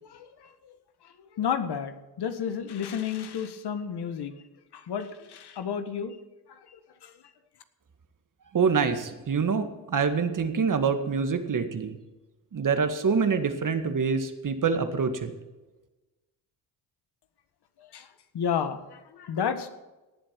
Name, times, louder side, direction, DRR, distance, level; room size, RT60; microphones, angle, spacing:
voice 1, 0.0-0.5 1.0-4.4 4.7-6.2 6.5-6.8 7.0-7.1 17.8-18.1 18.3-19.7, left 7 dB, 55° left, 10 dB, 1.6 m, -32 dB
voice 2, 8.5-12.0 12.5-15.3, right 5 dB, 40° right, 8 dB, 2.0 m, -26 dB
19.0 x 7.7 x 6.1 m, 1.1 s
hypercardioid pair, 55°, 46 cm